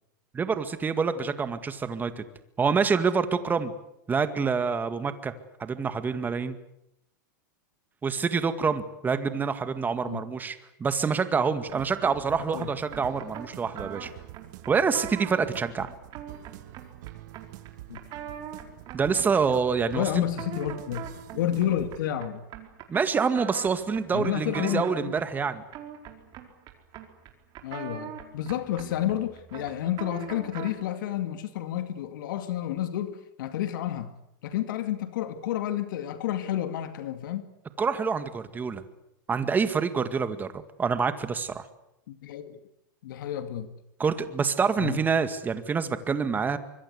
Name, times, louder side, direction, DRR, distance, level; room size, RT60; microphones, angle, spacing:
voice 1, 0.3-2.2 2.6-3.7 4.1-5.3 5.6-6.6 8.0-14.1 14.7-15.9 18.9-20.2 22.9-25.6 37.8-38.8 39.3-41.7 44.0-46.6, right 5 dB, 15° right, 11 dB, 2.0 m, -26 dB
sound 1, 11.6-22.0, right 15 dB, 60° right, 1.6 m, -47 dB
sound 2, 11.7-30.9, right 10 dB, 40° right, 4.6 m, -43 dB
voice 2, 19.9-21.0 21.3-22.5 24.1-25.1 27.6-34.1 34.4-37.5 42.1-42.6 43.0-43.7 44.8-45.0, left 11 dB, 70° left, 10 dB, 2.3 m, -30 dB
25.0 x 23.0 x 8.2 m, 0.81 s
supercardioid pair, 135°, 11 cm